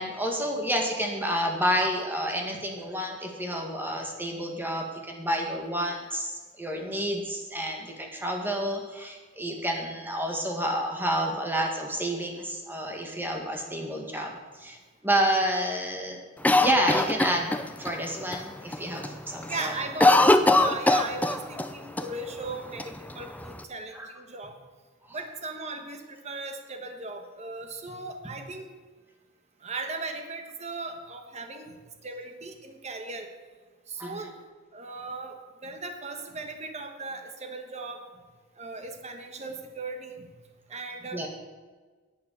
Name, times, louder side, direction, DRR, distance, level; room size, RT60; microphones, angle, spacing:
voice 1, 0.0-14.3 14.6-14.8 15.0-16.2 16.6-17.5 17.8-19.7 23.9-24.1 25.1-25.2 34.0-34.3 41.1-41.3, equal, 10° right, 1 dB, 1.9 m, -29 dB
Cough, 16.4-17.9 18.3-18.4 18.7-19.1 19.4-21.7 22.0-22.1 22.8-23.6, left 2 dB, 10° left, 0.6 m, -21 dB
voice 2, 19.5-24.6 25.1-28.7 29.6-33.3 33.9-34.3 34.7-38.0 38.6-40.3 40.7-41.3, right 3 dB, 35° right, 5 dB, 1.3 m, -38 dB
11.0 x 8.5 x 6.9 m, 1.4 s
head